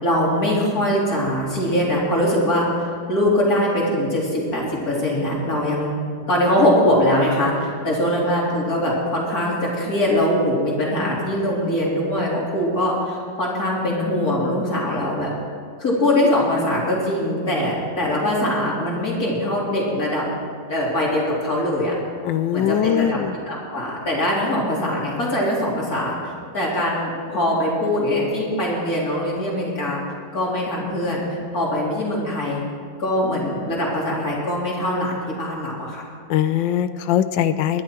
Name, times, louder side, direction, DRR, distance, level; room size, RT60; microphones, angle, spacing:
voice 1, 0.0-5.9 6.3-15.3 15.8-20.2 20.7-21.9 22.5-23.2 23.5-30.0 30.3-31.2 31.5-32.6 33.0-36.0, left 1 dB, 50° left, -4 dB, 3.8 m, -22 dB
voice 2, 22.2-23.4 36.3-37.8, left 10 dB, 85° left, 12 dB, 1.3 m, -21 dB
21.0 x 11.0 x 4.5 m, 2.2 s
omnidirectional pair, 2.0 m